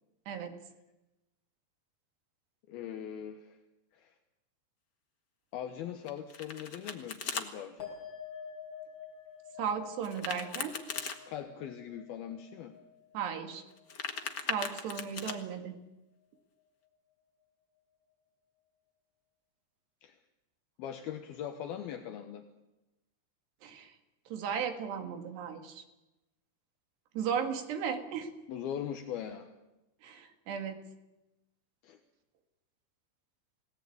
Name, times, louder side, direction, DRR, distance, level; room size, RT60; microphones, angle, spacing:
voice 1, 2.7-3.6 3.9-4.1 5.5-7.9 11.3-12.7 20.0-20.2 20.8-22.4 28.5-29.5 31.8-32.0, left 9 dB, 70° left, 6 dB, 3.0 m, -40 dB
Domestic sounds home sounds, 6.1-7.5 10.0-11.2 13.7-15.3, left 5 dB, 55° left, 1.1 m, -38 dB
sound 1, 7.8-14.5 14.8-15.4, left 7 dB, 25° left, 6.9 m, -49 dB
voice 2, 9.6-10.7 13.1-13.6 14.5-15.8 23.6-23.9 24.3-25.8 27.2-28.3 30.0-30.8, right 7 dB, 80° right, 6 dB, 4.4 m, -35 dB
29.5 x 18.0 x 8.8 m, 1.0 s
omnidirectional pair, 4.8 m